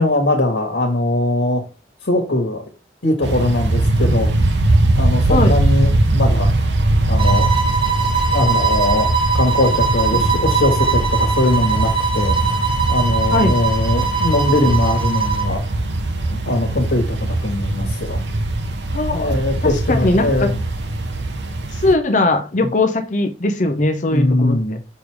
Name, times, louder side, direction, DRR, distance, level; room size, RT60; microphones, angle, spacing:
voice 1, 0.0-1.6 2.0-2.7 3.0-4.3 5.0-6.5 7.1-7.5 8.3-9.1 9.3-12.4 12.9-15.6 16.3-18.2 19.1-20.6 22.6-22.7 24.1-24.8, left 1 dB, 80° left, 1 dB, 1.6 m, -20 dB
sound 1, 3.2-21.9, right 1 dB, 75° right, 0.9 m, -20 dB
sound 2, 7.2-15.6, right 5 dB, 30° right, 0.9 m, -21 dB
voice 2, 18.9-20.5 21.7-24.6, left 2 dB, 45° left, 6 dB, 0.7 m, -19 dB
6.7 x 3.3 x 4.8 m, 0.33 s
head